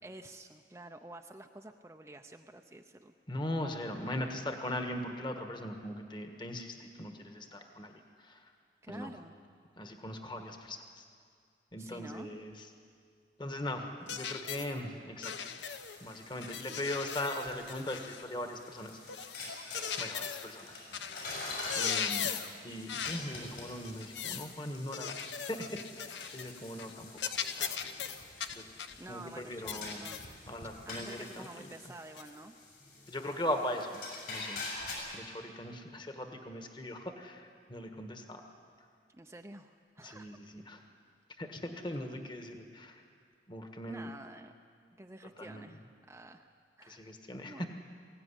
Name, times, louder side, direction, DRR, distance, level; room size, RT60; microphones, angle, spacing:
voice 1, 0.0-3.1 8.8-9.3 11.8-12.3 29.0-30.2 30.6-32.5 39.1-40.3 41.9-42.1 43.9-44.5 45.0-46.5 46.8-47.2 47.5-47.7, right 2 dB, 15° right, 4 dB, 0.6 m, -50 dB
voice 2, 3.3-8.5 8.9-9.1 9.8-11.0 11.7-12.5 13.4-15.3 16.0-19.0 20.0-21.4 21.7-22.3 22.6-25.2 25.5-27.7 28.5-28.6 29.1-30.1 30.5-31.7 33.1-34.0 34.3-34.6 35.1-38.5 40.0-40.8 41.4-43.0 43.5-44.1 45.4-45.7 46.9-47.7, left 1 dB, 25° left, 5 dB, 1.5 m, -40 dB
sound 1, 14.1-14.7 15.2-16.0 16.4-18.3 19.1-20.5 20.9-21.2 21.5-22.6 22.9-23.3 23.8-24.5 24.9-26.5 26.8-26.9 27.2-29.0 29.7-30.3 30.9-31.0 32.2-32.3, left 8 dB, 85° left, 1.0 m, -38 dB
sound 2, 15.7-34.9, left 3 dB, 65° left, 6.8 m, -46 dB
22.0 x 16.5 x 10.0 m, 2.2 s
head